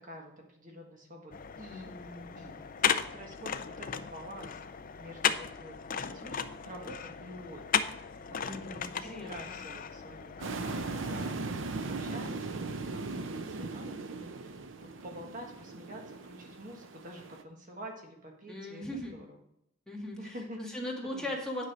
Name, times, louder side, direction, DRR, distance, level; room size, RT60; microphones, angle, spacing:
voice 1, 0.0-1.9 2.4-2.5 2.8-4.6 5.0-7.8 8.3-14.5 14.8-19.3 20.2-21.3, equal, 40° right, 1 dB, 1.5 m, -48 dB
sound 1, 1.3-11.3, left 7 dB, 45° left, 0.5 m, -35 dB
voice 2, 1.6-2.3 8.4-9.6 18.5-19.1 19.9-21.6, left 1 dB, 5° left, -3 dB, 1.8 m, -39 dB
sound 2, 10.4-17.4, right 3 dB, 70° right, 0.7 m, -38 dB
9.3 x 5.5 x 6.2 m, 0.76 s
head